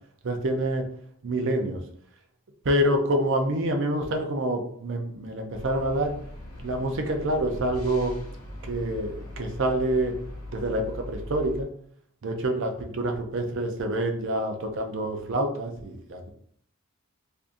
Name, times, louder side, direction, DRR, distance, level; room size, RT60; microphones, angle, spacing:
voice 1, 0.2-0.9 1.2-1.8 2.6-6.1 6.6-8.1 8.6-10.1 10.5-11.7 12.2-16.3, right 1 dB, 60° right, 4 dB, 0.5 m, -27 dB
sound 1, 5.5-11.6, left 1 dB, 80° left, 0.9 m, -40 dB
3.5 x 2.6 x 2.5 m, 0.64 s
head